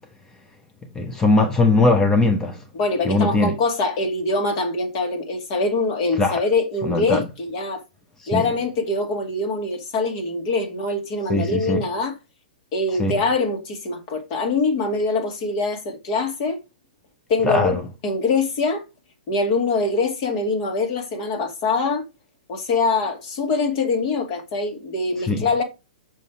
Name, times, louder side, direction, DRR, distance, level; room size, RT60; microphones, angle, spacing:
voice 1, 0.9-2.6 3.0-3.5 6.1-6.4 6.8-7.3 8.2-8.5 11.3-11.8 13.0-13.2 17.4-17.8 25.2-25.5, left 2 dB, 10° left, 0.8 m, -20 dB
voice 2, 2.7-7.8 8.3-12.1 12.7-16.6 17.3-18.8 19.3-22.0 22.5-25.6, left 3 dB, 45° left, 2.4 m, -23 dB
6.2 x 5.4 x 4.6 m
hypercardioid pair, 135°, 5 cm